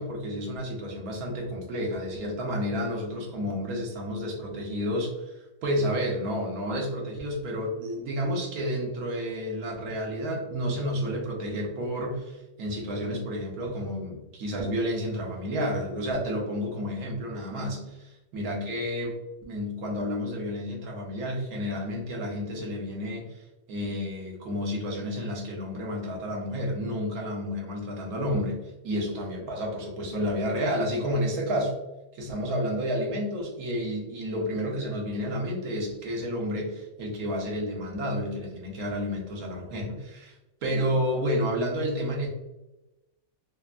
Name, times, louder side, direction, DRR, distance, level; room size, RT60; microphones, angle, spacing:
voice 1, 0.0-5.1 5.6-28.6 28.8-31.7 32.1-40.3 40.6-42.3, equal, 75° right, -1 dB, 1.2 m, -30 dB
3.4 x 2.0 x 2.3 m, 1.0 s
omnidirectional pair, 1.5 m